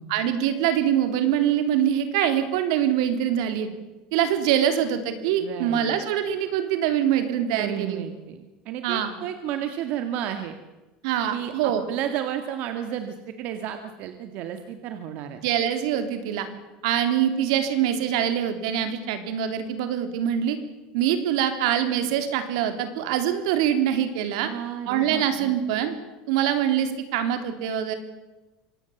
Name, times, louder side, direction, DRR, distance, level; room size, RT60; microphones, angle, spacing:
voice 1, 0.1-3.7 4.1-8.1 8.8-9.1 11.0-11.8 15.4-16.5 16.8-20.6 20.9-24.5 24.9-26.0 26.3-27.9, right 10 dB, 80° right, 8 dB, 3.5 m, -24 dB
voice 2, 5.4-5.9 7.5-10.6 11.3-15.4 24.4-25.6, right 10 dB, 60° right, 7 dB, 2.0 m, -32 dB
25.0 x 18.5 x 7.3 m, 1.1 s
supercardioid pair, 130°, 3 cm